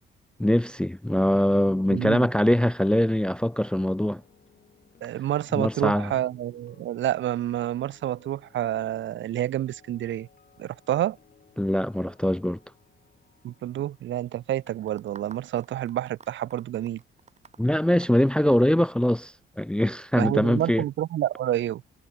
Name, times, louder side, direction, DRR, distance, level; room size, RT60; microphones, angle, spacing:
voice 1, 0.4-4.2 5.5-6.1 11.6-12.6 17.6-20.8, left 1 dB, 5° left, 0.4 m, -23 dB
voice 2, 1.9-2.3 5.0-10.3 10.6-11.2 13.4-17.0 20.1-21.8, right 12 dB, 70° right, 1.0 m, -28 dB
sound 1, 2.4-16.5 16.7-17.0, left 6 dB, 45° left, 7.7 m, -60 dB
sound 2, 14.7-19.1, right 5 dB, 35° right, 2.1 m, -51 dB
cardioid pair, 90°, 20 cm